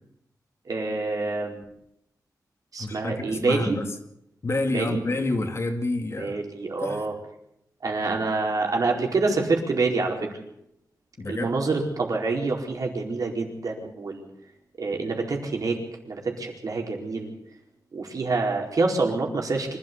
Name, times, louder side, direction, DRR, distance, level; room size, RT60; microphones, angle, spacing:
voice 1, 0.7-1.6 2.7-3.8 4.7-5.0 6.2-7.1 7.8-10.3 11.3-14.2 14.8-15.8 16.0-17.3 17.9-19.8, right 3 dB, 60° right, 1 dB, 4.6 m, -26 dB
voice 2, 2.8-3.8 4.4-6.4 6.8-7.1 11.2-11.6, left 2 dB, 40° left, 4 dB, 2.6 m, -28 dB
25.5 x 13.0 x 8.3 m, 0.77 s
wide cardioid pair, 145°, 7 cm